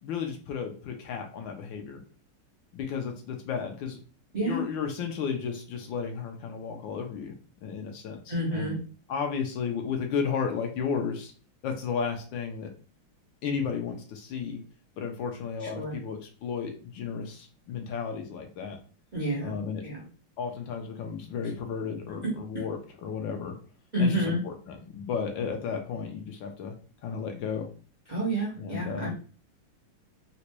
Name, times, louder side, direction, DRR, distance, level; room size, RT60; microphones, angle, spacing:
voice 1, 0.0-2.0 2.7-4.0 4.4-7.3 7.6-8.8 9.1-11.3 11.6-12.7 13.4-14.6 15.0-18.8 19.4-19.8 20.4-23.5 24.0-26.7 27.0-27.7 28.6-29.1, left 6 dB, 75° left, 4 dB, 1.2 m, -33 dB
voice 2, 8.3-8.8 15.6-16.0 19.1-19.5 19.8-20.0 22.2-22.6 23.9-24.4 28.1-29.1, equal, 60° right, -6 dB, 0.4 m, -29 dB
4.0 x 2.2 x 2.9 m, 0.39 s
omnidirectional pair, 2.3 m